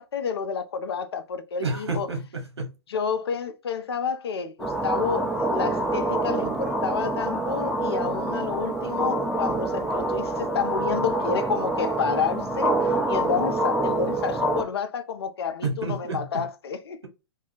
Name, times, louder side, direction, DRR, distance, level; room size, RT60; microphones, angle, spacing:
voice 1, 0.0-2.1 2.9-12.8 13.1-17.0, left 6 dB, 65° left, 0.6 m, -29 dB
voice 2, 1.6-2.7 15.6-16.4, right 3 dB, 80° right, 1.1 m, -30 dB
sound 1, 4.6-14.6, right 2 dB, ahead, 0.8 m, -26 dB
2.3 x 2.3 x 3.8 m
figure-of-eight pair, 115°, 14 cm